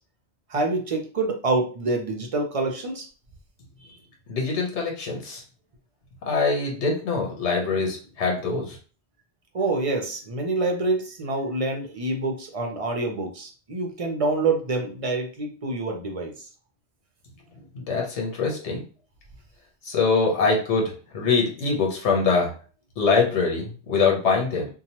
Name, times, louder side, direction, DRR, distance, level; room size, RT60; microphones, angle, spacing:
voice 1, 0.5-3.1 9.5-16.3, right 3 dB, 45° right, 2 dB, 0.4 m, -26 dB
voice 2, 4.3-5.4 6.2-8.8 17.8-18.8 19.9-22.5 23.0-24.7, left 4 dB, 90° left, -1 dB, 1.1 m, -23 dB
2.9 x 2.2 x 2.8 m, 0.38 s
omnidirectional pair, 1.1 m